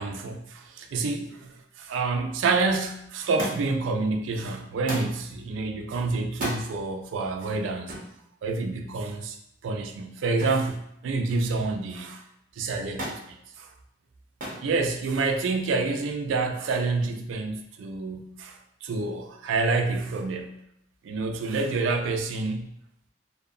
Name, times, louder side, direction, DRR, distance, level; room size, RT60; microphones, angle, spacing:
voice 1, 0.0-8.0 8.4-9.4 9.6-12.2 12.6-13.7 14.6-20.6 21.0-22.7, right 3 dB, 85° right, 5 dB, 0.3 m, -28 dB
Thump thud, 3.4-3.9 4.9-5.2 6.3-6.6 7.9-8.1 10.4-10.7 11.1-11.6 13.0-13.3 14.4-14.7 15.6-16.1 17.1-17.2, equal, 45° right, 0.7 m, -34 dB
2.6 x 2.0 x 2.4 m, 0.75 s
head